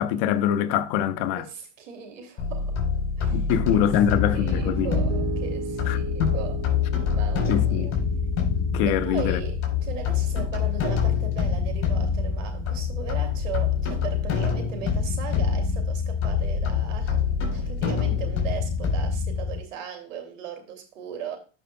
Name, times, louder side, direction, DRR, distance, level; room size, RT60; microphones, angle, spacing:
voice 1, 0.0-1.4 3.3-4.9 5.9-6.3 7.5-7.9 8.7-9.4, left 10 dB, 55° left, 1.1 m, -24 dB
voice 2, 1.4-2.8 3.2-3.5 3.7-3.9 4.3-6.6 7.1-7.9 8.8-21.4, right 8 dB, 80° right, 2.7 m, -38 dB
sound 1, 2.4-19.6, left 6 dB, 35° left, 3.8 m, -25 dB
Piano, 3.7-11.8, right 4 dB, 35° right, 3.1 m, -38 dB
12.5 x 5.7 x 2.3 m
hypercardioid pair, 115°, 38 cm